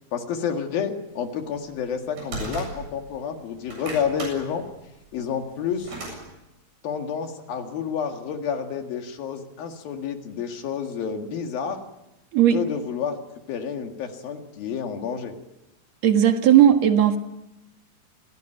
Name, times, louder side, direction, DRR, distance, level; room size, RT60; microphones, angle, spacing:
voice 1, 0.1-4.7 5.1-6.0 6.8-11.8 12.5-13.2 13.5-15.4, left 7 dB, 75° left, 5 dB, 3.7 m, -29 dB
sound 1, 1.4-3.1 3.5-6.2, right 2 dB, 70° right, 9.6 m, -36 dB
voice 2, 16.0-17.2, right 10 dB, 55° right, 6 dB, 2.5 m, -16 dB
27.5 x 17.5 x 9.2 m, 0.94 s
omnidirectional pair, 4.3 m